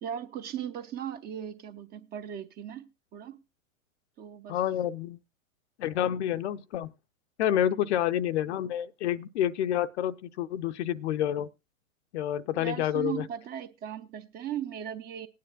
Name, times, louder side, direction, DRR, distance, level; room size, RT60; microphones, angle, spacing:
voice 1, 0.0-3.4 4.2-4.6 12.5-15.3, right 9 dB, 25° right, 0.6 m, -37 dB
voice 2, 4.5-5.2 5.8-6.9 7.4-11.5 12.1-13.3, left 11 dB, 55° left, 0.7 m, -28 dB
19.0 x 9.4 x 2.3 m
figure-of-eight pair, 105°, 41 cm